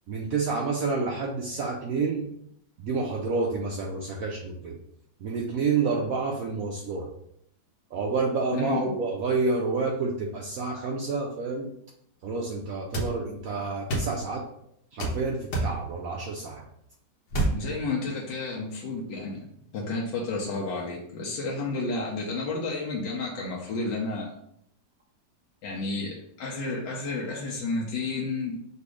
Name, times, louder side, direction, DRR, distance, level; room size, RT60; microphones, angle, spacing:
voice 1, 0.1-2.3 2.8-4.8 5.2-7.1 7.9-11.7 12.2-14.4 14.9-16.6, right 4 dB, 70° right, -1 dB, 0.8 m, -29 dB
voice 2, 8.5-9.0 17.5-19.5 19.7-24.3 25.6-28.6, left 3 dB, 75° left, -4 dB, 1.5 m, -31 dB
sound 1, 12.9-13.1 13.9-14.1 15.0-15.2 15.5-15.7 17.3-17.6, right 2 dB, 60° left, 1.4 m, -26 dB
4.1 x 2.6 x 4.7 m, 0.71 s
omnidirectional pair, 2.0 m